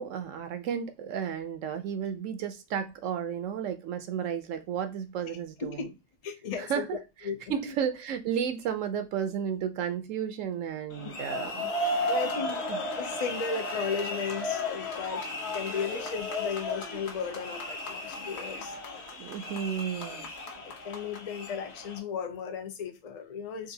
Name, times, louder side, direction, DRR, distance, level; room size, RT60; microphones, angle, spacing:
voice 1, 0.0-5.9 6.6-7.0 7.5-12.1 12.7-12.8 18.7-18.8 19.1-20.3, right 8 dB, 70° right, 0.9 m, -33 dB
voice 2, 5.3-5.9 6.2-6.9 7.2-7.7 12.1-12.7 13.0-15.2 15.5-18.8 20.6-23.7, left 6 dB, 90° left, 0.3 m, -35 dB
sound 1, 10.9-22.0, left 2 dB, 55° left, 1.0 m, -34 dB
3.8 x 2.4 x 2.7 m
omnidirectional pair, 1.4 m